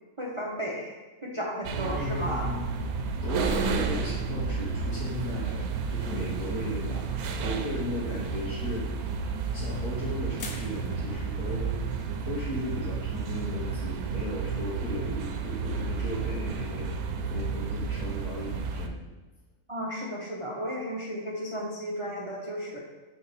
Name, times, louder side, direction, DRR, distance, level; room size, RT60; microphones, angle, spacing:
voice 1, 0.2-2.5 19.7-22.8, equal, 30° right, -2 dB, 0.6 m, -34 dB
sound 1, 1.6-18.9, right 5 dB, 80° right, 1.1 m, -31 dB
voice 2, 1.7-2.7 3.2-7.1 7.4-8.9 9.5-11.9 12.2-16.9 17.3-18.9, left 2 dB, 90° left, -6 dB, 1.6 m, -36 dB
sound 2, 10.4-11.1, left 4 dB, 70° left, 1.3 m, -41 dB
6.3 x 4.2 x 4.1 m, 1.2 s
omnidirectional pair, 1.6 m